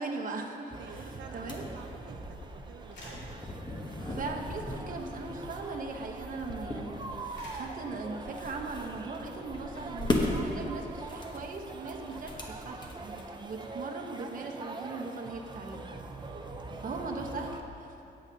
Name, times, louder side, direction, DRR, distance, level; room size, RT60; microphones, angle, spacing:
voice 1, 0.0-1.0 1.3-1.7 4.1-15.9 16.8-17.9, right 3 dB, 50° right, 2 dB, 0.9 m, -39 dB
sound 1, 0.7-17.6, right 3 dB, 25° right, 0.5 m, -44 dB
voice 2, 0.8-3.2 3.5-3.8 16.6-17.0 18.0-18.1, right 7 dB, 85° right, 4 dB, 0.5 m, -51 dB
sound 2, 0.9-13.5, left 2 dB, 25° left, 0.9 m, -38 dB
sound 3, 2.8-3.9 4.3-4.5 4.8-5.8 6.2-6.4 7.0-8.2 9.0-9.1, left 1 dB, 85° left, 2.3 m, -51 dB
13.5 x 8.9 x 2.7 m, 2.8 s
wide cardioid pair, 150°, 18 cm